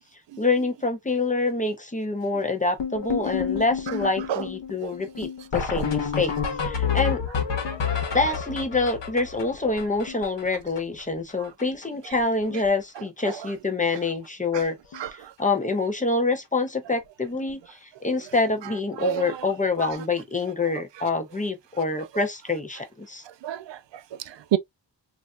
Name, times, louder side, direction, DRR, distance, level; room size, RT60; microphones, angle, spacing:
voice 1, 0.4-6.3 6.6-7.2 8.1-14.8 15.1-23.2, left 3 dB, 20° left, 0.5 m, -26 dB
sound 1, 2.8-11.0 11.3-11.4 11.6-11.8 12.1-12.7 13.0-13.2 14.0-14.1 14.5-14.6 14.9-15.1 17.3-17.4 19.8-19.9, left 6 dB, 85° left, 1.0 m, -29 dB
voice 2, 14.9-15.3 19.0-19.4 19.8-19.9 23.4-24.6, right 11 dB, 90° right, 0.5 m, -29 dB
3.2 x 2.5 x 2.3 m
wide cardioid pair, 135°, 42 cm